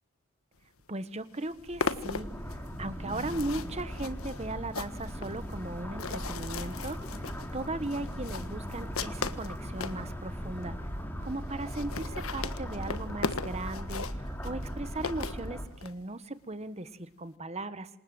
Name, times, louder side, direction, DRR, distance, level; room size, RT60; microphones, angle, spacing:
sound 1, 0.8-0.9 1.2-10.0 10.6-10.7 10.9-11.0 11.2-11.3 11.6-15.9, left 4 dB, 75° left, 1.5 m, -38 dB
voice 1, 0.9-7.3 7.5-10.9 11.2-17.9, right 2 dB, 30° right, 12 dB, 1.4 m, -38 dB
sound 2, 1.6-15.7, equal, 10° left, 3.8 m, -38 dB
27.5 x 27.0 x 7.9 m, 0.70 s
head